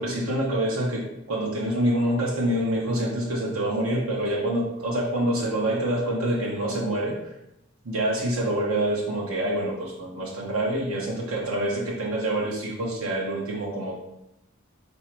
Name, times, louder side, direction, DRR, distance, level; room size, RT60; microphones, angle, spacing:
voice 1, 0.0-7.2 7.8-14.0, right 1 dB, 90° right, -3 dB, 0.9 m, -26 dB
4.2 x 2.7 x 4.4 m, 0.84 s
head